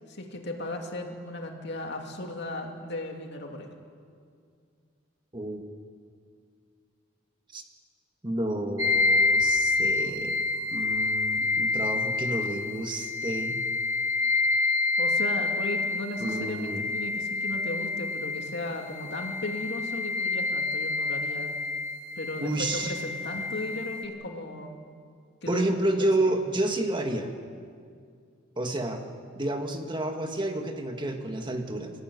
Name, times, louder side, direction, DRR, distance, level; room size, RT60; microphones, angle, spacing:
voice 1, 0.1-3.7 15.0-21.6 22.2-24.7 25.4-25.7 26.0-26.3, left 2 dB, 55° left, 2 dB, 2.7 m, -36 dB
voice 2, 8.2-10.4 10.7-13.6 16.2-16.8 22.4-22.9 25.5-27.3 28.6-29.0 29.3-31.9, right 1 dB, 25° right, 4 dB, 1.6 m, -30 dB
sound 1, 8.8-24.0, left 3 dB, 75° right, 2.5 m, -28 dB
29.0 x 14.5 x 9.5 m, 2.3 s
head